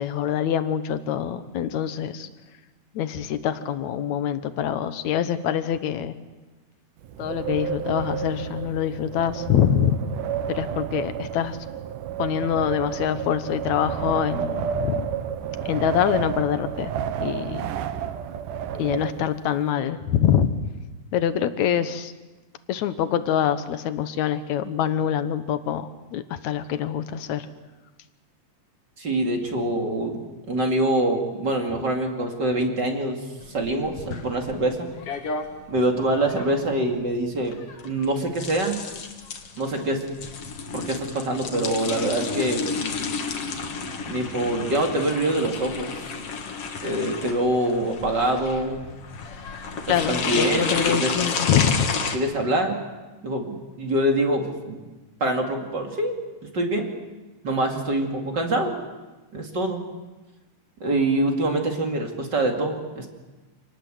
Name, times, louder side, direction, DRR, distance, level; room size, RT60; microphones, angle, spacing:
voice 1, 0.0-2.3 2.9-6.1 7.2-10.0 10.5-11.6 12.2-15.1 15.7-16.9 17.2-17.7 18.7-20.5 21.1-22.1 22.7-27.5 49.9-51.9, left 9 dB, 70° left, 11 dB, 2.3 m, -25 dB
Wind, 7.0-19.6, right 9 dB, 90° right, 2.6 m, -31 dB
voice 2, 29.0-30.1 30.5-33.2 33.5-34.9 35.7-37.6 37.8-38.8 39.6-40.0 40.7-42.6 44.1-45.9 46.8-48.9 49.9-51.1 52.1-52.8 53.2-54.8 55.2-56.2 56.5-56.9 57.4-58.8 59.3-59.8 60.8-63.1, right 1 dB, 35° right, 2 dB, 2.8 m, -25 dB
sound 1, 33.4-52.2, left 5 dB, 50° left, 2.6 m, -31 dB
27.5 x 19.5 x 7.8 m, 1.2 s
omnidirectional pair, 3.7 m